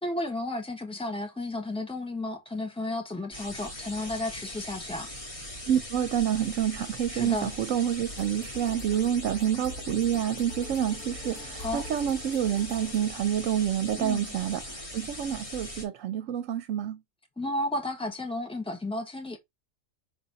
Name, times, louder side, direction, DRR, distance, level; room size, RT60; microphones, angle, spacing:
voice 1, 0.0-5.1 7.1-7.5 11.6-11.8 14.0-14.3 17.4-19.4, left 1 dB, 5° left, 1.3 m, -33 dB
sound 1, 3.3-15.9, left 1 dB, 25° left, 1.9 m, -41 dB
voice 2, 5.7-17.0, right 10 dB, 80° right, 1.0 m, -28 dB
sound 2, 8.1-13.1, left 2 dB, 75° left, 1.5 m, -45 dB
5.9 x 4.1 x 4.0 m
omnidirectional pair, 1.4 m